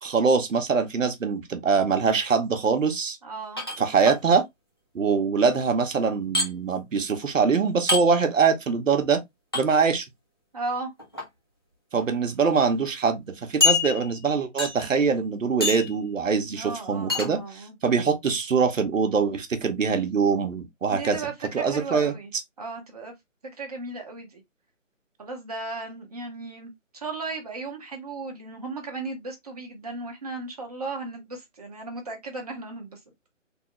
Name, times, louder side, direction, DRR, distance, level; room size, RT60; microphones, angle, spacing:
voice 1, 0.0-3.2 3.8-4.4 4.9-9.2 9.5-10.1 11.9-21.2 21.5-22.1, right 5 dB, 75° right, 1.0 m, -23 dB
voice 2, 3.2-3.6 10.5-10.9 16.5-17.7 20.9-22.3 22.6-23.1 23.4-24.4 25.2-33.0, right 3 dB, 30° right, 0.9 m, -36 dB
sound 1, 3.6-4.2 6.3-6.5 7.9-8.1 9.5-9.6 11.0-11.3 12.0-12.1 12.5-12.6 13.6-14.2 14.6-14.9 15.6-15.9 17.1-17.3, left 4 dB, 20° left, 0.6 m, -25 dB
3.4 x 2.4 x 3.0 m
hypercardioid pair, 170°, 39 cm